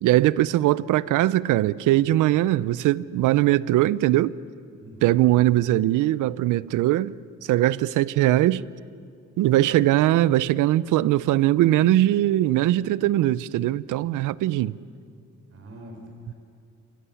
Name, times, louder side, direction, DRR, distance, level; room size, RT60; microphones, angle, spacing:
voice 1, 0.0-4.4 5.0-7.1 7.5-8.6 9.4-14.7, right 15 dB, 85° right, 0.6 m, -21 dB
voice 2, 4.8-5.4 15.5-16.3, equal, 50° right, 4.9 m, -44 dB
27.5 x 26.5 x 7.1 m
cardioid pair, 90°, 30 cm